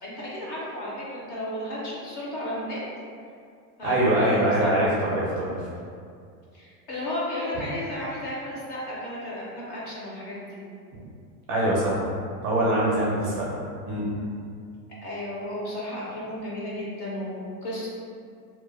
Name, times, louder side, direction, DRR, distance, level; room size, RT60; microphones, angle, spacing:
voice 1, 0.0-2.8 3.8-4.9 6.5-10.6 15.0-17.9, left 1 dB, 35° left, -7 dB, 0.4 m, -33 dB
voice 2, 3.8-5.7 11.5-12.1 12.4-13.5 13.9-14.1, right 1 dB, 35° right, -6 dB, 0.4 m, -23 dB
2.2 x 2.0 x 3.1 m, 2.3 s
supercardioid pair, 155°, 44 cm